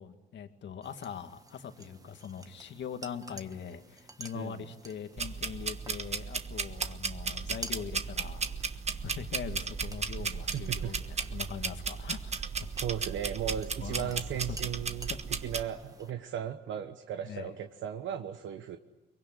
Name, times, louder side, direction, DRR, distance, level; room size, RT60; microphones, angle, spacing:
voice 1, 0.0-12.4 13.8-14.6 15.1-15.2 17.3-17.5, left 7 dB, 65° left, 7 dB, 2.1 m, -42 dB
sound 1, 0.8-16.1, right 2 dB, 15° right, 1.6 m, -51 dB
voice 2, 4.3-4.6 10.2-10.9 12.8-15.1 15.4-18.8, right 9 dB, 75° right, 7 dB, 1.2 m, -36 dB
sound 2, 5.2-15.6, right 5 dB, 35° right, 1.4 m, -35 dB
23.5 x 23.0 x 9.7 m, 1.0 s
cardioid pair, 90°, 20 cm